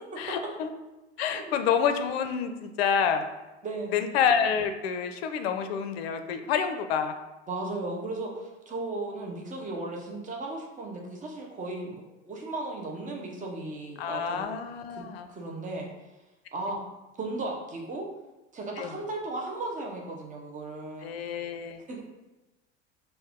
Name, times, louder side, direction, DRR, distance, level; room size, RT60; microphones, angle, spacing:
voice 1, 0.2-0.7 1.2-3.2 3.9-7.1 14.0-15.3 18.8-19.0 21.0-21.8, left 7 dB, 60° left, 8 dB, 0.6 m, -28 dB
voice 2, 1.2-1.6 3.6-4.0 7.5-14.5 14.9-15.0 15.3-15.9 16.5-16.8 17.2-18.1 18.5-21.2 21.9-22.0, right 2 dB, 20° right, 0 dB, 1.0 m, -36 dB
4.5 x 2.6 x 3.6 m, 1.0 s
figure-of-eight pair, 75°, 35 cm